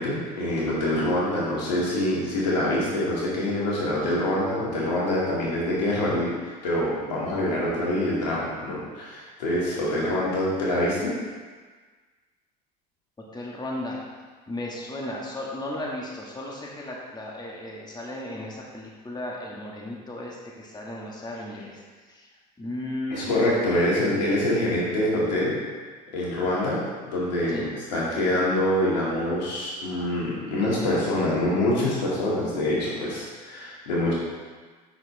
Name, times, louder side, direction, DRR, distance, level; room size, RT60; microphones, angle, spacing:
voice 1, 0.0-11.1 23.1-25.6 26.1-26.8 27.1-34.1, left 1 dB, 85° left, -6 dB, 2.3 m, -25 dB
voice 2, 13.2-14.0 14.5-22.3 22.6-23.3 27.5-27.8, left 1 dB, 20° left, -3 dB, 1.7 m, -35 dB
7.7 x 6.1 x 3.4 m, 1.4 s
hypercardioid pair, 70°, 21 cm